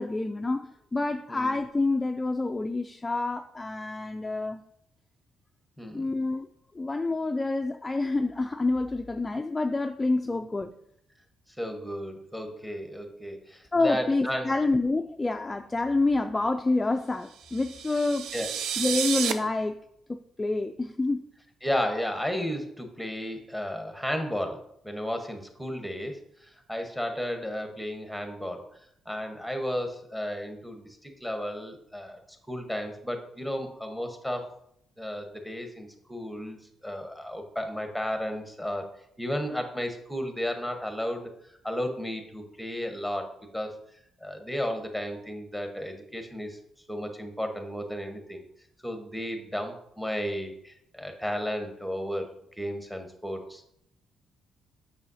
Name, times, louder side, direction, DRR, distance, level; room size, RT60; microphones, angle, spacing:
voice 1, 0.0-4.6 5.9-6.5 6.7-10.7 13.7-18.3 18.8-19.8 20.1-21.2, left 2 dB, 20° left, 0.3 m, -28 dB
voice 2, 5.8-6.1 10.2-10.4 11.6-14.5 18.3-18.5 21.6-28.7 29.1-32.2 32.5-34.5 35.0-36.6 36.8-38.9 39.2-41.3 41.6-43.8 44.2-46.6 46.9-48.4 48.8-52.3 52.6-53.7, equal, ahead, 1.0 m, -33 dB
sound 1, 17.4-19.3, right 8 dB, 85° right, 0.4 m, -31 dB
7.2 x 5.5 x 2.7 m
cardioid pair, 90°, 0 cm